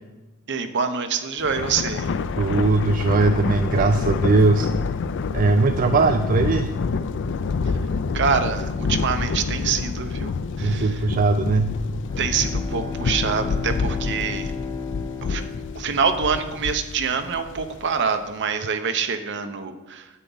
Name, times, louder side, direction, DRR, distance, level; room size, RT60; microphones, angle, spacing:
voice 1, 0.5-2.1 8.1-11.0 12.2-14.5 15.2-15.4 15.7-20.1, right 5 dB, 55° right, 7 dB, 0.9 m, -25 dB
Thunder, 1.4-18.0, left 4 dB, 60° left, 0.4 m, -27 dB
voice 2, 2.4-4.7 5.3-6.7 10.6-11.8, right 3 dB, 40° right, 8 dB, 0.4 m, -19 dB
Bowed string instrument, 11.9-16.7, left 5 dB, 15° left, 0.7 m, -34 dB
9.7 x 8.2 x 4.0 m, 1.1 s
head